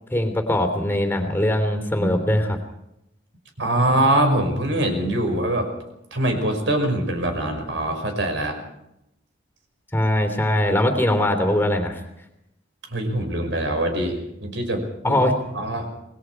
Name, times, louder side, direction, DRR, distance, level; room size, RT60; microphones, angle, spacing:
voice 1, 0.1-2.6 9.9-12.0 15.0-15.4, left 1 dB, 10° left, 5 dB, 3.3 m, -21 dB
voice 2, 3.6-5.7 6.1-8.6 12.9-15.2 15.5-15.9, right 1 dB, 70° right, 4 dB, 5.5 m, -23 dB
28.0 x 21.0 x 4.8 m, 0.83 s
head